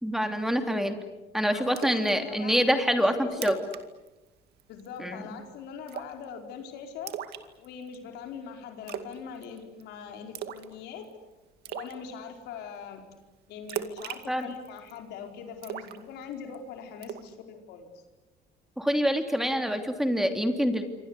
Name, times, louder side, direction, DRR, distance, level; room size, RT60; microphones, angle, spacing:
voice 1, 0.0-1.0 1.3-3.6 5.0-5.2 14.3-14.5 18.8-20.8, equal, ahead, 6 dB, 3.0 m, -26 dB
voice 2, 1.5-3.6 4.7-7.2 7.6-11.1 11.7-13.0 13.5-17.9, left 6 dB, 85° left, 4 dB, 4.7 m, -42 dB
Splash splatter, 1.8-2.1 2.5-2.6 3.0-3.1 3.3-3.8 4.1-4.3 4.6-5.0 5.9-6.2 7.1-7.9 8.9-9.2 9.4-9.8 10.3-10.7 11.0-11.1 11.6-11.9 13.7-15.0 15.6-16.5 17.0-17.3, right 10 dB, 75° right, 2.2 m, -37 dB
27.5 x 25.0 x 8.3 m, 1.1 s
cardioid pair, 110°, 17 cm